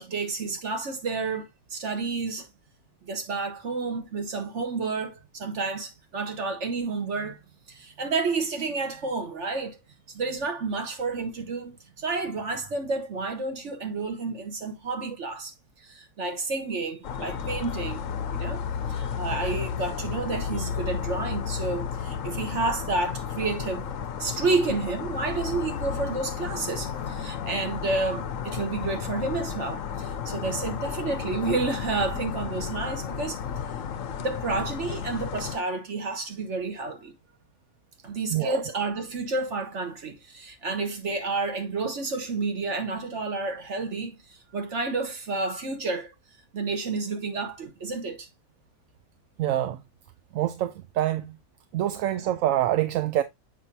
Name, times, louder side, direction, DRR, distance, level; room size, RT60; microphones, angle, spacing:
voice 1, 0.0-2.5 3.0-7.4 7.7-9.8 10.1-18.0 18.3-18.6 18.9-23.8 24.2-33.4 34.2-37.1 38.0-46.1 46.5-48.3, right 3 dB, 50° right, 1.6 m, -30 dB
sound 1, 17.0-35.6, left 7 dB, 65° left, 1.0 m, -33 dB
voice 2, 49.4-49.8 50.3-51.3 51.7-53.2, right 13 dB, 70° right, 0.9 m, -25 dB
7.4 x 5.6 x 2.7 m
omnidirectional pair, 1.6 m